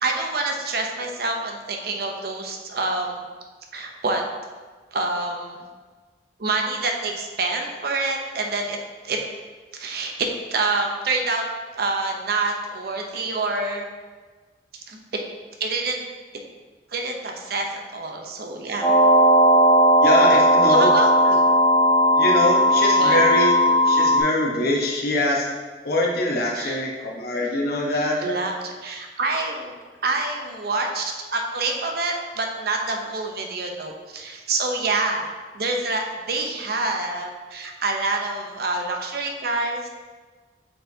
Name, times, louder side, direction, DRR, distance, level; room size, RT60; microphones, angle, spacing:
voice 1, 0.0-3.2 3.7-4.2 4.9-5.6 6.4-8.8 9.0-9.2 9.7-11.4 11.7-13.9 14.9-15.0 15.6-16.0 16.9-18.9 20.7-21.5 23.0-23.2 26.5-26.8 28.2-29.8 30.0-35.3 35.5-39.9, right 3 dB, 60° right, 2 dB, 0.7 m, -27 dB
sound 1, 18.8-24.2, equal, 5° left, 1.5 m, -16 dB
voice 2, 20.0-20.9 22.2-25.5 25.8-28.2, left 1 dB, 60° left, -2 dB, 1.1 m, -23 dB
7.6 x 4.6 x 2.8 m, 1.4 s
head